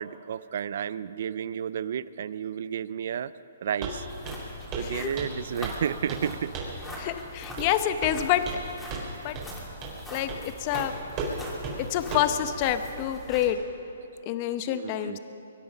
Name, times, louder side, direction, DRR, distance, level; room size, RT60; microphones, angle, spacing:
voice 1, 0.0-3.3 3.6-4.1 4.5-6.5 9.1-9.4 14.7-15.2, right 8 dB, 60° right, 18 dB, 0.5 m, -32 dB
Walk footsteps, 3.8-4.0 4.2-4.5 4.7-4.9 5.2-5.8 6.1-6.3 6.5-6.8 7.6-7.7 8.0-8.6 8.9-9.1 9.3-9.5 9.8-10.0 10.3-10.4 10.7-10.9 11.2-11.3 11.6-11.8 12.1-12.3, right 4 dB, 30° right, 4.3 m, -34 dB
sound 1, 4.0-13.5, left 1 dB, 5° left, 3.0 m, -42 dB
voice 2, 4.8-5.1 7.0-8.5 9.2-9.4 10.1-11.1 11.9-13.6 14.3-15.2, left 11 dB, 35° left, 10 dB, 0.8 m, -27 dB
23.5 x 11.0 x 5.5 m, 2.8 s
hypercardioid pair, 150°, 0 cm